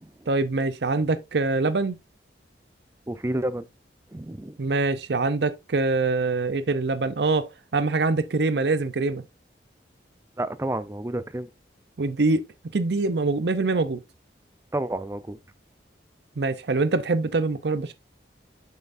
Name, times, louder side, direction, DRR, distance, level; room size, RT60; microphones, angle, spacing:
voice 1, 0.3-2.0 4.6-9.2 12.0-12.5 12.7-14.0 16.4-17.9, right 3 dB, 70° right, 0.6 m, -24 dB
voice 2, 3.1-3.7 4.1-4.6 10.4-11.5 14.7-15.4, right 1 dB, 15° right, 0.5 m, -30 dB
7.5 x 5.6 x 2.6 m
head